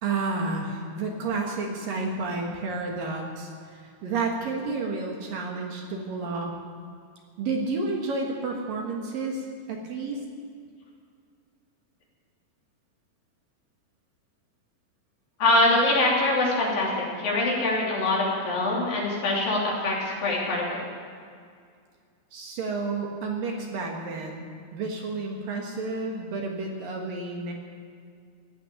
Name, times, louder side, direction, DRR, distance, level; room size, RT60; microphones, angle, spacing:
voice 1, 0.0-6.5 7.4-10.2 22.3-27.5, right 3 dB, 65° right, 0 dB, 3.0 m, -31 dB
voice 2, 15.4-20.8, left 2 dB, 60° left, -4 dB, 4.6 m, -24 dB
16.0 x 8.8 x 9.8 m, 2.2 s
omnidirectional pair, 4.8 m